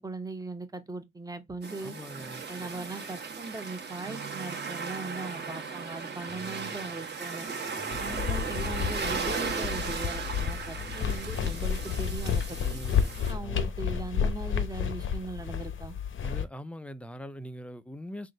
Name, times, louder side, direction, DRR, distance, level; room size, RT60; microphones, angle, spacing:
voice 1, 0.0-1.9 2.5-7.5 8.0-12.8 13.3-15.9, right 3 dB, 10° right, 0.7 m, -39 dB
sound 1, 1.6-13.3, right 5 dB, 35° right, 1.1 m, -36 dB
voice 2, 1.8-2.5 6.2-6.8 7.8-8.2 10.7-11.2 12.6-13.7 16.2-18.3, equal, 5° left, 0.3 m, -43 dB
Guitar, 4.0-9.8, right 9 dB, 85° right, 0.9 m, -51 dB
sound 2, 7.9-16.4, left 7 dB, 40° left, 0.7 m, -31 dB
3.7 x 2.5 x 3.8 m
cardioid pair, 90°, 30 cm